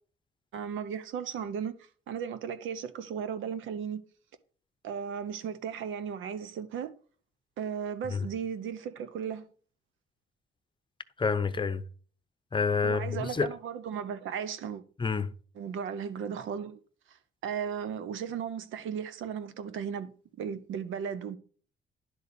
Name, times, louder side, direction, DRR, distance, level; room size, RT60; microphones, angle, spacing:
voice 1, 0.5-1.7 2.1-4.0 4.8-6.9 7.6-9.5 12.8-14.8 15.6-16.8 17.4-20.1 20.4-21.4, right 7 dB, 80° right, 1.0 m, -35 dB
voice 2, 11.2-11.8 12.5-13.5 15.0-15.3, left 5 dB, 25° left, 0.8 m, -28 dB
11.0 x 4.0 x 6.9 m
cardioid pair, 90°, 20 cm